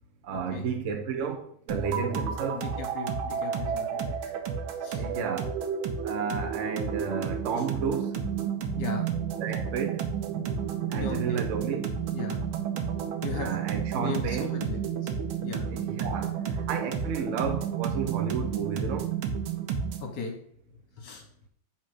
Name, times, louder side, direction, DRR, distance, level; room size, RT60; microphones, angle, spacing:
voice 1, 0.2-2.7 4.9-5.5 6.0-8.1 9.4-10.0 10.9-11.9 13.3-14.5 15.7-19.1, right 6 dB, 60° right, 0.8 m, -32 dB
sound 1, 1.7-20.1, right 7 dB, 85° right, 1.6 m, -31 dB
voice 2, 2.1-4.4 4.8-5.0 8.8-9.1 10.9-11.4 12.1-12.4 13.2-13.5 14.0-15.1 15.4-15.6 20.0-20.3 21.0-21.2, left 6 dB, 60° left, 1.8 m, -37 dB
8.0 x 3.9 x 4.9 m
omnidirectional pair, 2.2 m